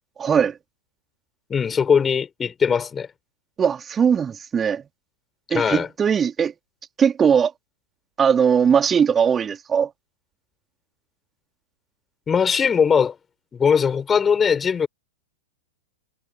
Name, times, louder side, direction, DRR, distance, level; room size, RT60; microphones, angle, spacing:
voice 1, 0.2-0.5 3.6-4.8 5.5-6.5 7.0-7.5 8.2-9.9, right 7 dB, 20° right, 3.1 m, -19 dB
voice 2, 1.5-3.1 5.5-5.9 12.3-13.1 13.5-14.9, left 6 dB, 15° left, 4.5 m, -20 dB
figure-of-eight pair, 100°, 0 cm